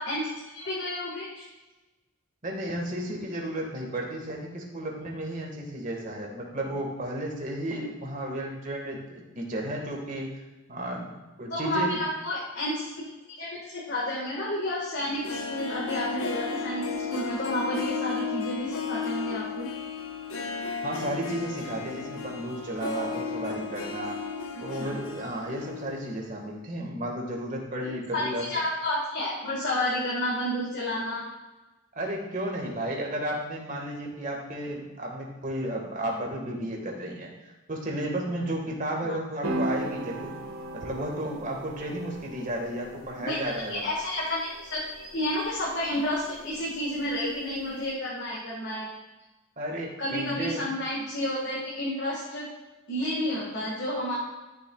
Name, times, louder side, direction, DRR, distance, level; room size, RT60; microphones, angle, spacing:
voice 1, 0.0-1.4 11.5-12.9 13.4-19.7 24.8-25.0 28.1-31.2 39.0-39.2 43.2-43.4 43.7-48.9 50.0-52.5 52.9-54.2, left 1 dB, 55° left, -5 dB, 1.7 m, -30 dB
voice 2, 2.4-10.3 10.7-12.0 20.8-24.2 24.6-28.4 31.9-40.4 40.7-43.8 49.6-50.7, right 1 dB, 35° right, 0 dB, 1.6 m, -33 dB
Harp, 15.1-26.1 26.4-26.5, left 5 dB, 70° left, 1.0 m, -34 dB
sound 1, 39.4-47.9, right 1 dB, 70° right, 1.4 m, -38 dB
12.5 x 6.9 x 2.3 m, 1.1 s
head